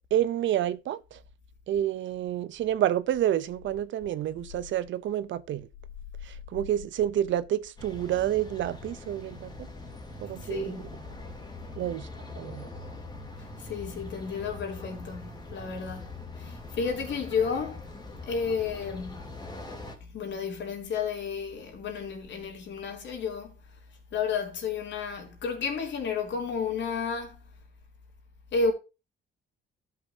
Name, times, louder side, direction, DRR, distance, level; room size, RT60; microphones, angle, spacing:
voice 1, 0.1-1.2 1.7-5.7 6.2-9.5 10.2-10.9 11.8-12.1 12.3-12.7, right 11 dB, 70° right, 0.7 m, -29 dB
sound 1, 7.8-20.0, left 2 dB, 20° left, 2.7 m, -43 dB
voice 2, 10.4-10.8 13.4-16.1 16.4-17.8 18.3-19.2 20.0-23.5 24.1-27.4 28.5-28.7, left 5 dB, 65° left, 3.1 m, -32 dB
14.0 x 5.8 x 2.7 m
cardioid pair, 90°, 20 cm